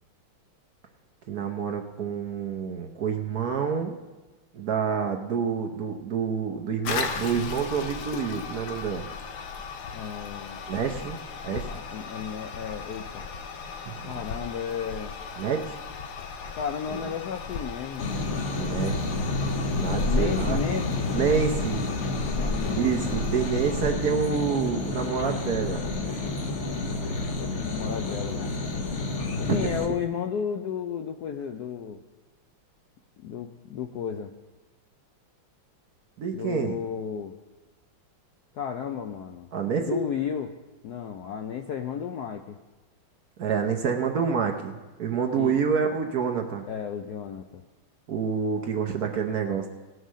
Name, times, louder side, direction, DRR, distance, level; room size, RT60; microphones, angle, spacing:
voice 1, 1.3-4.0 4.5-9.1 10.7-11.2 11.4-11.7 13.9-14.1 15.4-15.8 16.9-17.0 18.5-19.4 19.7-20.6 21.1-21.9 22.7-25.8 29.4-29.8 36.2-36.8 39.5-40.0 43.4-46.7 48.1-49.7, right 6 dB, 60° right, 3 dB, 1.1 m, -28 dB
Toilet flush, 6.8-23.9, left 5 dB, 90° left, 1.8 m, -37 dB
voice 2, 9.9-10.6 11.7-13.2 14.1-15.1 16.5-18.1 19.7-21.1 22.4-22.8 27.5-28.6 29.4-32.0 33.2-34.3 36.3-37.3 38.5-39.5 39.9-40.5 40.8-42.6 45.3-45.6 46.7-47.6, left 8 dB, 75° left, 6 dB, 0.9 m, -33 dB
sound 1, 18.0-29.9, left 2 dB, 45° left, 1.1 m, -29 dB
18.0 x 6.5 x 6.3 m, 1.2 s
omnidirectional pair, 2.3 m